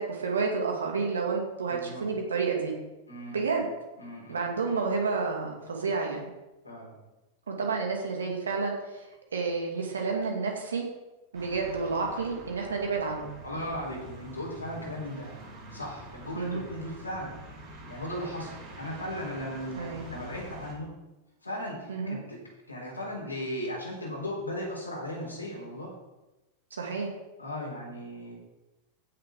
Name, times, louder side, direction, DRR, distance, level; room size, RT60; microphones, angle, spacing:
voice 1, 0.0-2.7 3.3-3.7 4.3-6.3 7.5-9.1 9.3-10.9 11.3-13.3 16.4-16.6 19.8-20.0 21.9-22.2 26.7-27.1, right 4 dB, 70° right, 1 dB, 2.2 m, -30 dB
voice 2, 1.7-2.1 3.1-3.5 4.0-4.4 6.6-7.0 13.4-15.3 15.7-17.3 17.9-20.9 21.4-22.4 22.7-25.9 27.4-28.3, equal, 85° left, -3 dB, 3.9 m, -37 dB
sound 1, 11.3-20.7, right 1 dB, 35° right, 3.9 m, -46 dB
15.5 x 6.5 x 3.7 m, 1.0 s
figure-of-eight pair, 90°, 0 cm